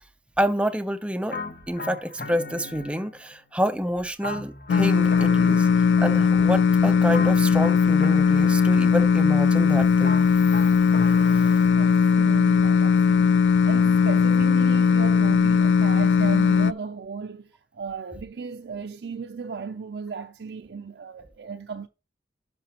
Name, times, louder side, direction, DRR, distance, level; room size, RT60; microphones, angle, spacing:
voice 1, 0.4-1.4 1.7-5.7 6.0-10.2, equal, 5° right, 0.4 m, -28 dB
sound 1, 1.3-3.4 4.2-6.6 7.1-9.2 10.0-12.4, left 3 dB, 55° left, 1.2 m, -37 dB
sound 2, 4.7-16.7, left 6 dB, 85° left, 0.3 m, -19 dB
voice 2, 11.8-21.9, right 5 dB, 70° right, 0.4 m, -36 dB
11.0 x 5.8 x 2.9 m
head